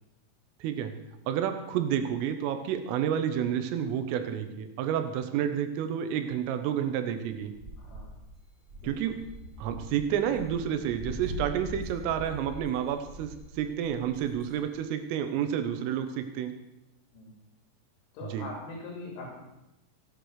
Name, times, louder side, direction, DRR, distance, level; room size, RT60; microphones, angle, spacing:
voice 1, 0.6-0.9 1.3-7.5 8.8-9.2 9.6-16.5 18.3-18.5, right 9 dB, 80° right, 8 dB, 3.7 m, -30 dB
sound 1, 7.5-14.7, equal, 30° right, 4.0 m, -43 dB
voice 2, 7.8-8.2 8.8-9.0 17.1-17.3 18.1-19.4, left 2 dB, 70° left, -1 dB, 5.5 m, -42 dB
16.0 x 9.9 x 6.5 m, 0.91 s
omnidirectional pair, 5.8 m